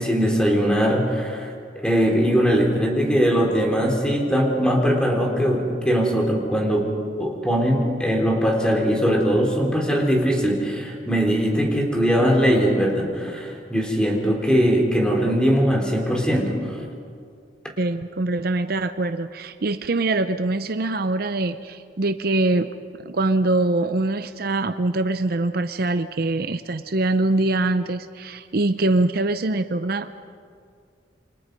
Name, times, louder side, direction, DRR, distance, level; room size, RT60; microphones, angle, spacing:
voice 1, 0.0-1.5 1.8-6.9 7.2-16.7, equal, 5° left, 1 dB, 3.8 m, -21 dB
voice 2, 17.8-22.7 23.0-30.3, right 2 dB, 55° right, 10 dB, 0.7 m, -23 dB
28.5 x 25.5 x 5.4 m, 2.2 s
head